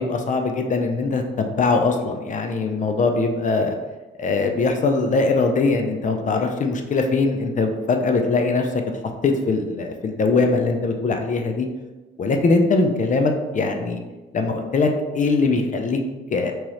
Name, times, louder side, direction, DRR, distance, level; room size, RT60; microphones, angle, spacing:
voice 1, 0.0-3.7 4.2-8.8 9.2-11.7 12.2-14.0 14.3-14.9 15.1-16.0 16.3-16.5, left 3 dB, 40° left, 4 dB, 0.5 m, -21 dB
3.6 x 3.0 x 3.1 m, 1.2 s
cardioid pair, 90°, 20 cm